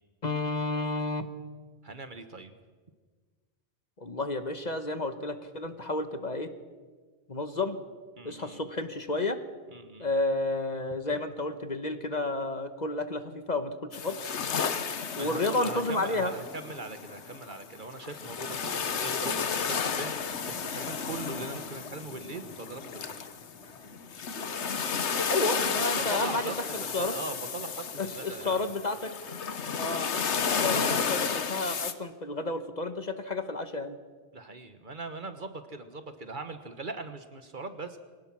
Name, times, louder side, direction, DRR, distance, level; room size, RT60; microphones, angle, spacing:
voice 1, 0.2-1.3 4.0-6.5 7.3-7.8 8.2-9.4 10.0-14.3 15.1-16.3 25.3-27.1 28.0-29.1 29.8-30.1 30.5-34.0, left 2 dB, 40° left, 9 dB, 1.2 m, -31 dB
voice 2, 1.8-2.5 8.2-8.6 9.7-10.1 15.2-23.2 26.0-28.7 29.6-29.8 34.3-38.0, right 3 dB, 45° right, 9 dB, 1.4 m, -40 dB
sound 1, 13.9-31.9, left 6 dB, 80° left, 1.4 m, -32 dB
sound 2, 18.0-26.2, left 1 dB, 20° left, 6.7 m, -53 dB
23.5 x 18.5 x 6.1 m, 1.5 s
omnidirectional pair, 1.2 m